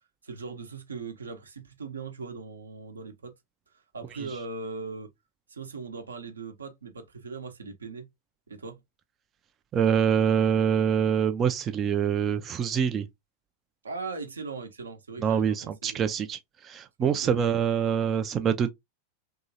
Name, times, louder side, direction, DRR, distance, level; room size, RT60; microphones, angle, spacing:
voice 1, 0.2-3.3 3.7-5.1 5.5-8.1 8.5-8.8 13.8-16.0 17.0-17.4, right 4 dB, 75° right, 0.7 m, -39 dB
voice 2, 9.7-13.1 15.2-18.7, right 8 dB, 25° right, 0.3 m, -25 dB
3.0 x 2.7 x 2.6 m
figure-of-eight pair, 90°, 0 cm